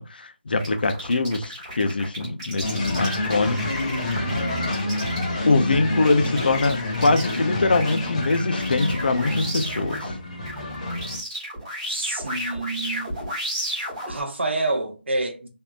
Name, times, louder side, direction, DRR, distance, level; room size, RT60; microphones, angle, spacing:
voice 1, 0.0-3.8 5.4-10.1, left 3 dB, 50° left, 0.6 m, -23 dB
sound 1, 0.6-10.1 10.5-14.2, equal, 10° right, 1.4 m, -34 dB
sound 2, 2.6-11.2, left 2 dB, 35° left, 1.2 m, -28 dB
voice 2, 4.2-4.7 11.9-13.2 14.1-15.5, right 2 dB, 70° right, 1.0 m, -28 dB
3.5 x 2.7 x 2.4 m
figure-of-eight pair, 170°, 6 cm